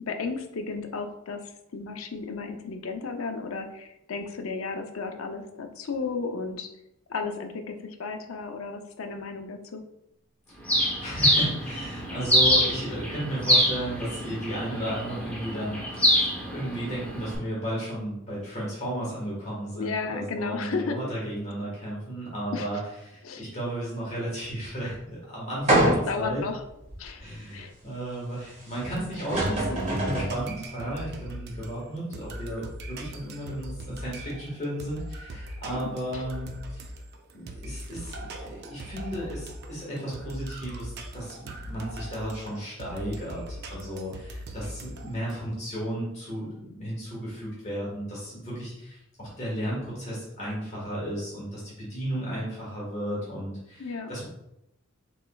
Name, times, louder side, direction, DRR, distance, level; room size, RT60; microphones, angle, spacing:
voice 1, 0.1-1.4 1.7-6.7 7.1-9.8 19.8-21.0 22.5-22.7 23.2-23.4 25.8-26.6 27.0-27.2 27.5-27.7 35.8-36.2 53.8-54.1, left 4 dB, 70° left, 5 dB, 0.5 m, -33 dB
voice 2, 10.5-22.8 23.0-26.4 27.2-36.8 37.3-54.3, right 1 dB, 35° left, -6 dB, 1.4 m, -34 dB
Bird, 10.7-17.3, equal, 5° left, 0.9 m, -25 dB
sound 1, 25.7-26.3 26.9-27.0 28.8-28.9 29.2-30.4, right 1 dB, 35° right, 1.5 m, -24 dB
sound 2, 28.8-45.3, right 1 dB, 50° right, 0.5 m, -40 dB
6.3 x 3.0 x 2.3 m, 0.82 s
head